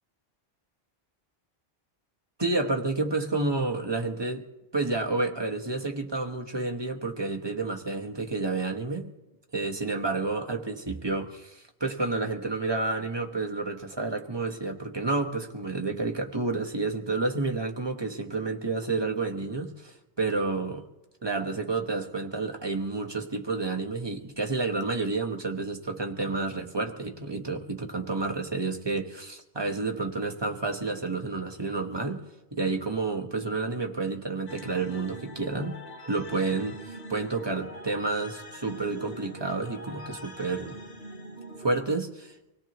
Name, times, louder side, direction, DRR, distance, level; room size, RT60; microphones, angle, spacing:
voice 1, 2.4-4.4 4.7-9.1 9.5-20.8 21.2-32.2 32.5-35.8 36.1-40.8 41.6-42.3, right 3 dB, 25° right, 3 dB, 1.2 m, -30 dB
sound 1, 34.5-41.9, right 1 dB, 80° left, 3.4 m, -43 dB
25.5 x 17.5 x 3.0 m, 0.98 s
omnidirectional pair, 1.1 m